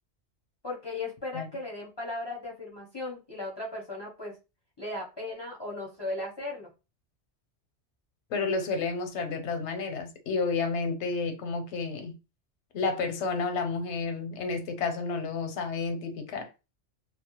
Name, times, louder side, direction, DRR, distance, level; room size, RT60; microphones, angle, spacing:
voice 1, 0.6-4.4 4.8-6.7, left 2 dB, 35° left, 0.5 m, -37 dB
voice 2, 8.3-12.2 12.7-16.5, left 4 dB, 80° left, 0.9 m, -31 dB
2.2 x 2.0 x 2.8 m
omnidirectional pair, 1.2 m